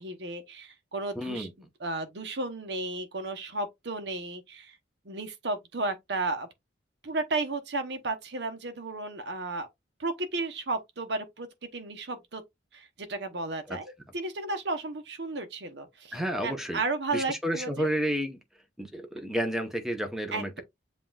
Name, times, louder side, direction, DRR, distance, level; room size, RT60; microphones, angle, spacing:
voice 1, 0.0-1.5 1.8-4.8 5.0-6.5 7.0-9.7 10.0-11.5 11.7-12.4 12.7-17.9 20.3-20.6, right 2 dB, 65° right, 0.9 m, -33 dB
voice 2, 1.2-1.5 13.7-13.8 16.1-16.8 17.1-18.4 18.8-20.6, equal, ahead, 0.8 m, -31 dB
7.5 x 2.5 x 2.3 m
head